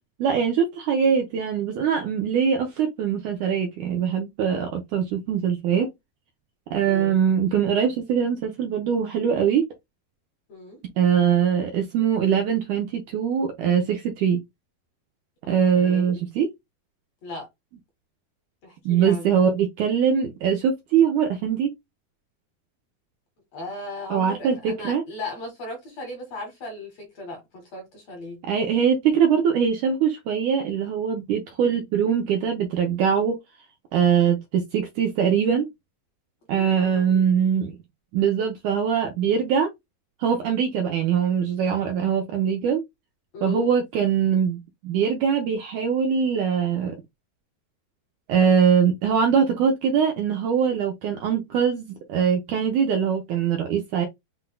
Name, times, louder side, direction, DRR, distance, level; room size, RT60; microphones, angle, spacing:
voice 1, 0.2-5.9 6.7-9.6 11.0-14.4 15.5-16.5 18.9-21.7 24.1-25.0 28.4-33.4 33.9-35.7 36.5-37.8 38.1-39.7 40.2-42.8 43.4-47.0 48.3-54.1, right 7 dB, 75° right, 1.9 m, -22 dB
voice 2, 6.8-7.2 10.5-10.8 15.7-16.2 17.2-17.5 18.6-19.3 23.5-28.4 36.5-37.3 43.3-43.7, left 2 dB, 55° left, 2.1 m, -37 dB
7.7 x 2.6 x 2.3 m
omnidirectional pair, 4.3 m